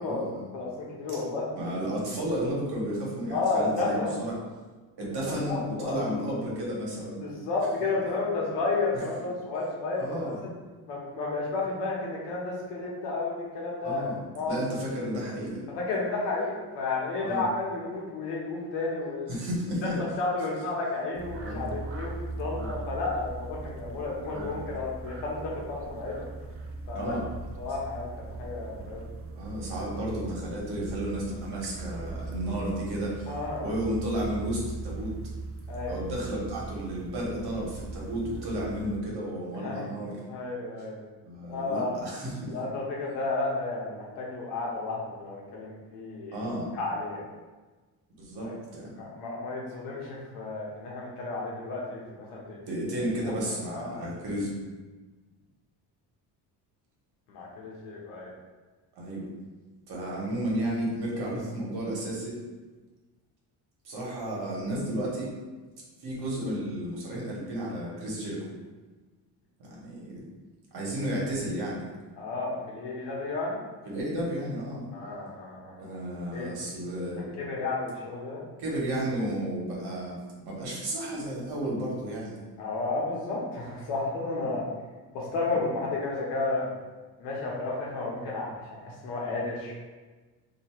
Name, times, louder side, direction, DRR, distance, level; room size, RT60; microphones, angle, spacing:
voice 1, 0.0-0.4 1.1-1.2 1.6-4.4 5.0-7.3 10.0-10.4 13.8-14.2 14.5-15.6 17.2-17.5 19.3-20.0 21.4-21.8 22.5-22.7 24.3-24.5 26.9-27.2 29.4-33.3 33.6-35.2 35.9-40.2 41.2-42.6 46.3-46.7 48.2-48.5 48.7-48.9 52.7-54.5 59.0-59.2 59.9-62.4 63.8-65.3 66.0-68.5 69.6-70.2 70.7-71.8 73.8-74.8 75.8-77.3 78.6-80.2 80.4-82.4 84.4-84.6, right 1 dB, 65° right, -4 dB, 1.5 m, -32 dB
voice 2, 0.5-1.5 3.3-4.1 5.0-6.1 7.2-10.5 10.9-14.0 14.3-14.6 15.7-19.3 19.8-26.2 26.9-27.1 27.6-29.0 33.3-33.7 35.7-35.9 39.5-39.9 40.3-41.0 41.5-42.0 42.5-46.4 46.7-47.2 48.4-52.7 53.2-53.3 53.7-54.0 57.3-58.3 72.2-73.6 74.9-75.8 76.3-76.5 77.4-78.4 82.6-84.6 85.1-86.7 87.2-89.7, left 3 dB, 90° left, -3 dB, 1.1 m, -32 dB
sound 1, 21.1-39.0, right 3 dB, 35° right, 0.5 m, -39 dB
2.9 x 2.8 x 4.4 m, 1.3 s
supercardioid pair, 85°, 40 cm